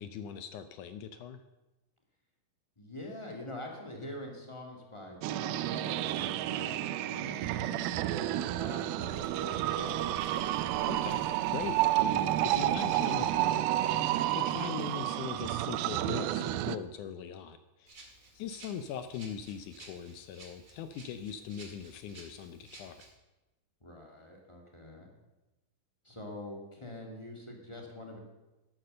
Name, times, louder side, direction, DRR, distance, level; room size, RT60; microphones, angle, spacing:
voice 1, 0.0-1.4 10.9-13.6 13.9-18.0 18.3-23.1, left 8 dB, 80° left, 10 dB, 1.8 m, -41 dB
voice 2, 2.7-10.0 23.8-25.1 26.0-28.2, left 1 dB, 10° left, 0 dB, 1.4 m, -45 dB
sound 1, 5.2-16.8, right 13 dB, 85° right, 2.5 m, -30 dB
sound 2, 9.0-16.0, right 7 dB, 65° right, 2.0 m, -52 dB
Rattle (instrument), 17.9-23.1, right 2 dB, 30° right, 1.8 m, -54 dB
12.0 x 11.5 x 6.7 m, 1.0 s
omnidirectional pair, 4.2 m